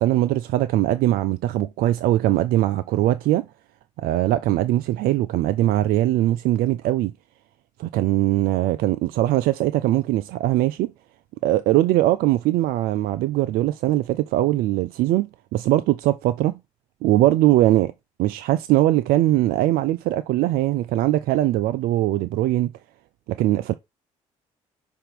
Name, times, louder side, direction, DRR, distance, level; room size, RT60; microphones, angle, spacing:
voice 1, 0.0-3.5 4.0-7.1 7.8-10.9 11.4-16.6 17.0-17.9 18.2-22.7 23.3-23.7, right 15 dB, 65° right, 0.4 m, -21 dB
5.6 x 3.6 x 5.9 m
hypercardioid pair, 55°, 16 cm